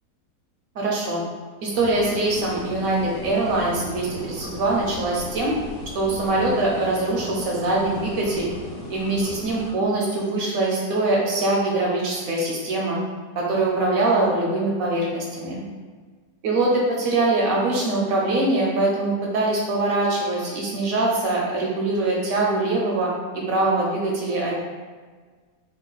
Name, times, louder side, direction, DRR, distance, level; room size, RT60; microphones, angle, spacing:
voice 1, 0.7-1.2 1.6-5.5 5.9-8.5 8.9-13.0 13.3-15.6 16.4-23.1 23.5-24.5, right 2 dB, 70° right, -3 dB, 0.9 m, -23 dB
sound 1, 1.7-9.7, left 1 dB, 80° left, 1.3 m, -37 dB
3.0 x 2.2 x 3.8 m, 1.5 s
omnidirectional pair, 1.7 m